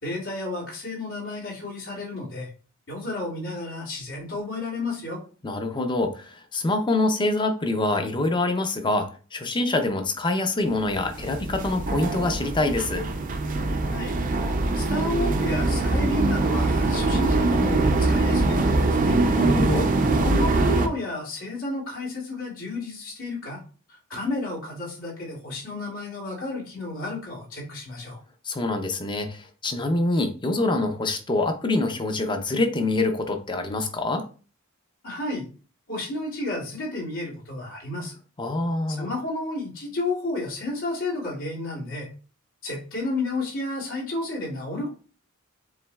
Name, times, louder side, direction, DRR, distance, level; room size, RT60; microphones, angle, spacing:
voice 1, 0.0-2.5 2.9-5.2 13.9-14.2 14.8-19.2 20.0-23.6 23.9-28.2 35.0-35.5 35.9-38.1 39.0-42.1 42.6-44.9, left 2 dB, 80° left, -6 dB, 2.4 m, -31 dB
voice 2, 5.4-13.0 19.3-19.9 28.4-34.2 38.4-39.1, left 2 dB, 20° left, 6 dB, 0.5 m, -25 dB
sound 1, 10.9-20.9, right 2 dB, 40° right, 0.5 m, -23 dB
7.2 x 2.9 x 2.3 m, 0.38 s
head